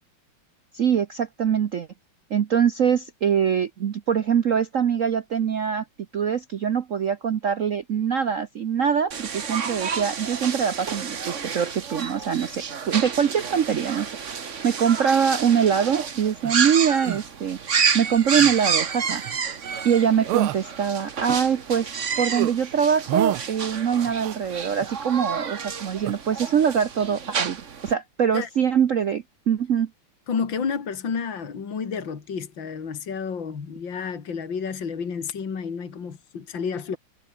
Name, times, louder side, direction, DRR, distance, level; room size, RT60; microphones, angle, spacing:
voice 1, 0.7-1.9 2.3-5.8 6.1-14.1 14.6-17.6 17.9-19.2 19.8-29.9, right 7 dB, 55° right, 0.8 m, -23 dB
sound 1, 9.1-27.9, right 6 dB, 40° right, 1.5 m, -30 dB
sound 2, 15.9-16.6 17.0-17.2 18.4-18.6 19.1-19.4 19.7-20.0 20.3-20.6 21.1-22.0 22.3-22.5 23.1-23.4 24.0-24.9 26.0-26.1, right 17 dB, 80° right, 1.5 m, -30 dB
voice 2, 30.3-37.0, left 6 dB, 60° left, 3.2 m, -30 dB
omnidirectional pair, 2.4 m